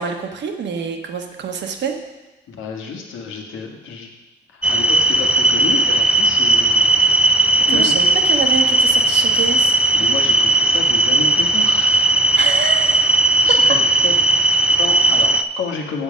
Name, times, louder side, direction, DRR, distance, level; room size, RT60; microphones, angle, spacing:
voice 1, 0.0-2.0 7.7-9.8 12.4-13.2 13.5-13.6, right 6 dB, 60° right, 4 dB, 1.1 m, -26 dB
voice 2, 2.5-4.1 4.5-6.9 7.7-8.0 9.9-12.1 13.4-16.0, left 5 dB, 80° left, 1 dB, 1.5 m, -30 dB
sound 1, 4.6-15.4, right 2 dB, 5° right, 0.5 m, -16 dB
8.0 x 7.0 x 5.1 m, 1.1 s
cardioid pair, 90°, 20 cm